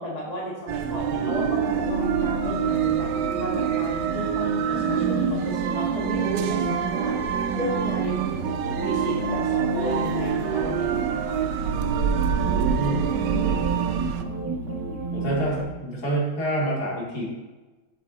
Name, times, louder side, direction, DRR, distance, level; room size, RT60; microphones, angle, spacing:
voice 1, 0.0-7.2 7.5-8.5 8.8-11.4 13.1-13.9, equal, 20° left, -3 dB, 1.5 m, -33 dB
sound 1, 0.7-14.2, right 8 dB, 75° right, 1.1 m, -28 dB
sound 2, 0.8-15.6, right 5 dB, 55° right, 2.0 m, -29 dB
voice 2, 12.4-13.1 15.1-17.2, right 1 dB, 50° left, -5 dB, 2.8 m, -28 dB
8.1 x 7.2 x 4.1 m, 1.2 s
omnidirectional pair, 2.2 m